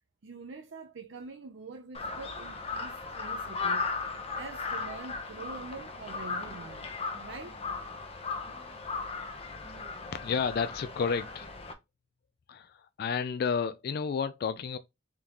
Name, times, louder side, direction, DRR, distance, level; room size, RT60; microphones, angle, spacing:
voice 1, 0.2-3.9 4.3-7.6, right 4 dB, 75° right, 0.6 m, -45 dB
Crow, 1.9-11.7, left 4 dB, 30° left, 0.7 m, -37 dB
voice 2, 10.1-11.5 12.5-14.8, left 6 dB, 55° left, 0.3 m, -31 dB
3.8 x 3.7 x 2.9 m
head